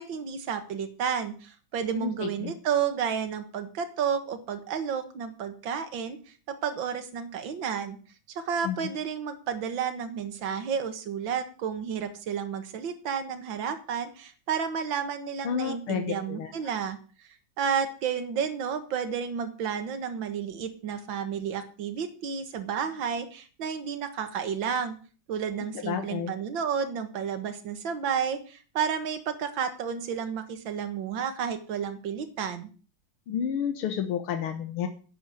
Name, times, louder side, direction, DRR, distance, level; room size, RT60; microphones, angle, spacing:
voice 1, 0.0-6.2 6.5-8.0 8.3-17.3 17.6-25.0 25.3-32.7, right 7 dB, 65° right, 8 dB, 2.2 m, -31 dB
voice 2, 2.0-2.5 8.6-8.8 15.4-16.5 25.9-26.3 33.3-34.9, left 8 dB, 85° left, 6 dB, 2.1 m, -30 dB
11.0 x 8.0 x 8.1 m, 0.38 s
omnidirectional pair, 2.3 m